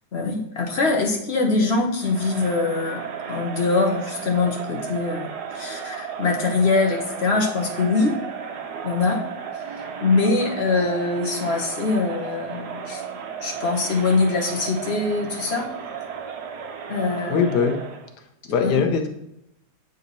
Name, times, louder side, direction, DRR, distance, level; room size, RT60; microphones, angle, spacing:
voice 1, 0.1-3.0 3.3-5.3 5.5-8.2 8.8-9.2 10.0-13.0 13.4-15.7 16.9-17.5 18.6-18.8, left 3 dB, 45° left, 2 dB, 1.2 m, -23 dB
Crowd, 1.9-18.1, right 7 dB, 80° right, 1.4 m, -34 dB
voice 2, 17.3-17.8 18.5-19.1, left 6 dB, 85° left, 5 dB, 1.4 m, -21 dB
8.5 x 4.1 x 4.0 m, 0.81 s
omnidirectional pair, 1.7 m